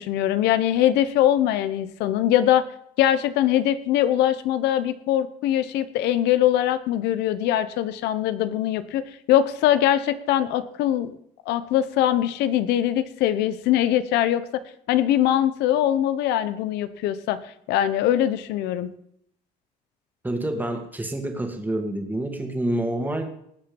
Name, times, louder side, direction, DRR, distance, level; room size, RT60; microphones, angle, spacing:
voice 1, 0.0-2.7 3.0-11.1 11.5-14.6 14.9-17.4 17.7-18.9, left 12 dB, 90° left, 13 dB, 0.9 m, -22 dB
voice 2, 20.2-23.3, right 1 dB, 10° right, 4 dB, 2.2 m, -27 dB
19.5 x 7.0 x 5.4 m, 0.72 s
cardioid pair, 110°, 17 cm